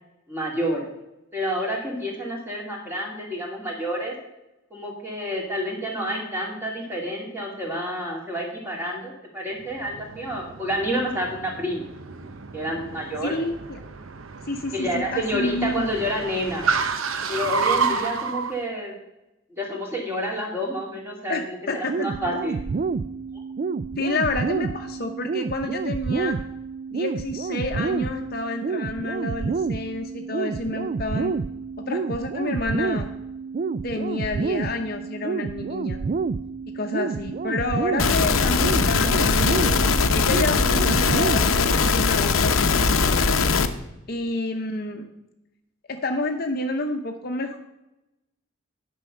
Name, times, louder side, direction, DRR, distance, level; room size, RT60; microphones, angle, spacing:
voice 1, 0.3-0.9 1.3-4.1 4.7-11.8 12.5-13.3 14.7-16.6 17.3-18.9 19.6-22.6, equal, 10° right, -2 dB, 2.4 m, -29 dB
Car, 9.6-18.5, right 5 dB, 85° right, 0.8 m, -30 dB
voice 2, 13.2-13.8 14.5-15.9 21.3-21.9 24.0-26.4 26.9-31.3 31.8-33.1 33.8-36.0 36.7-39.7 40.1-43.1 44.1-45.0 45.9-47.6, left 2 dB, 50° left, 4 dB, 0.8 m, -29 dB
sound 1, 21.9-41.9, right 4 dB, 40° right, 0.3 m, -29 dB
sound 2, 38.0-43.7, left 4 dB, 90° left, 0.8 m, -20 dB
9.7 x 5.5 x 6.6 m, 0.92 s
head